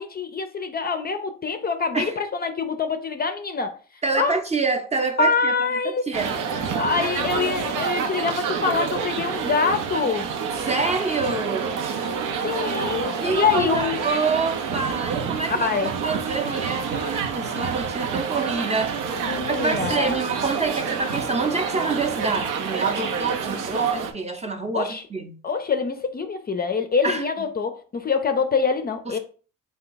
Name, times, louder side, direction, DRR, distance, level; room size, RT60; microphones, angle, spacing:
voice 1, 0.0-3.8 4.2-4.3 5.2-6.1 6.8-10.3 12.4-14.0 15.6-16.0 19.2-20.2 24.7-25.0 25.4-29.2, left 5 dB, 30° left, 0.4 m, -25 dB
voice 2, 4.0-5.8 6.1-6.7 7.0-7.6 10.7-11.8 13.2-19.0 19.4-25.4 27.0-27.2 29.1-29.2, right 4 dB, 20° right, 0.6 m, -27 dB
sound 1, 6.1-24.1, right 6 dB, 90° right, 0.6 m, -28 dB
3.3 x 2.7 x 3.8 m
cardioid pair, 90°, 30 cm